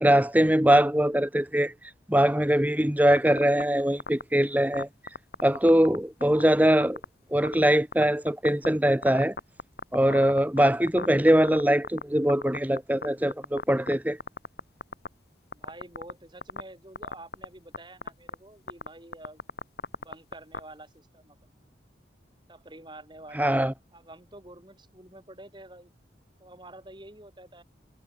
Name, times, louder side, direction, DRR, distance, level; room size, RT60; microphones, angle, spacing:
voice 1, 0.0-1.7 2.1-4.9 5.4-7.0 7.3-9.4 9.9-14.2 23.3-23.7, right 1 dB, 10° right, 1.0 m, -22 dB
sound 1, 3.1-3.6 4.0-4.2 4.7-6.0 6.2-6.4 6.8-7.0 7.4-7.5 7.9-8.7 9.0-12.0 12.3-13.1 13.3-13.9 14.2-15.1 15.5-16.1 16.4-16.6 17.0-17.4 17.7-17.8 18.0-18.3 18.7-18.9 19.1-20.6, left 3 dB, 60° left, 2.9 m, -34 dB
voice 2, 15.5-19.4 20.0-21.5 22.5-23.6 23.9-25.9 26.4-27.6, right 1 dB, 25° right, 7.1 m, -48 dB
head